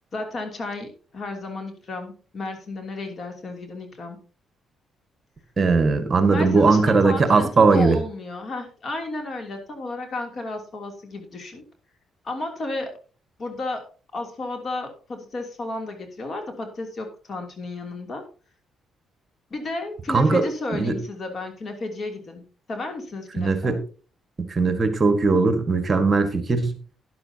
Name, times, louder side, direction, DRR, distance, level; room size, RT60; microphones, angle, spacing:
voice 1, 0.1-4.2 6.3-11.6 12.2-12.9 13.4-13.8 14.1-18.2 19.5-22.4 22.7-23.8, left 2 dB, 45° left, 4 dB, 2.9 m, -32 dB
voice 2, 5.6-8.0 20.1-20.4 20.7-21.0 23.4-23.8 24.5-26.8, right 4 dB, 35° right, 8 dB, 1.6 m, -19 dB
12.5 x 10.5 x 2.8 m, 0.38 s
cardioid pair, 90°, 0 cm